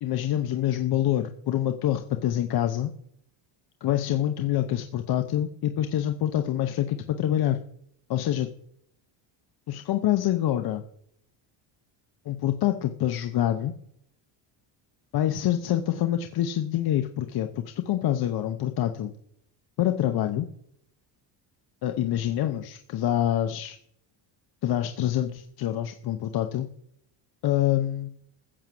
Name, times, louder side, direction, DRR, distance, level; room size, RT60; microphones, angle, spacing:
voice 1, 0.0-2.9 3.8-7.6 8.1-8.5 9.7-10.8 12.2-13.7 15.1-19.1 19.8-20.5 21.8-23.8 24.6-26.7 27.4-28.1, left 12 dB, 50° left, 7 dB, 0.9 m, -26 dB
15.0 x 7.2 x 7.6 m, 0.71 s
cardioid pair, 160°, 47 cm